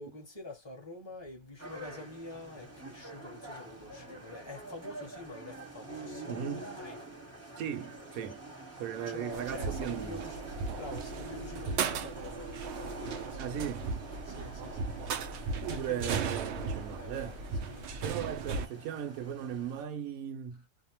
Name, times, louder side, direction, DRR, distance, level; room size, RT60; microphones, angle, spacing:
voice 1, 0.0-7.0 9.1-10.4 10.7-13.6 14.2-17.4 17.7-18.3, left 2 dB, 20° left, 0.8 m, -47 dB
sound 1, 1.6-19.8, right 2 dB, 15° right, 0.7 m, -46 dB
voice 2, 6.3-6.7 7.6-8.4 8.8-10.3 13.4-13.9 15.6-17.4 18.0-20.6, right 9 dB, 70° right, 1.0 m, -37 dB
sound 2, 9.3-18.7, right 5 dB, 90° right, 0.5 m, -37 dB
2.6 x 2.0 x 2.8 m
omnidirectional pair, 1.7 m